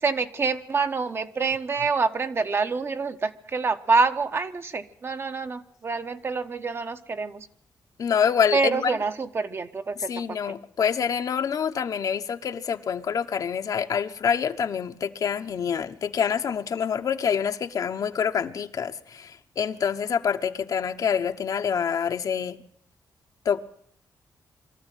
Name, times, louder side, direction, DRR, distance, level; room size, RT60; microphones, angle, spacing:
voice 1, 0.0-7.5 8.5-10.4, right 4 dB, 35° right, 1.1 m, -26 dB
voice 2, 8.0-8.9 10.0-22.6 23.4-23.6, left 7 dB, 60° left, 1.1 m, -26 dB
22.5 x 14.0 x 9.2 m
wide cardioid pair, 135°, 7 cm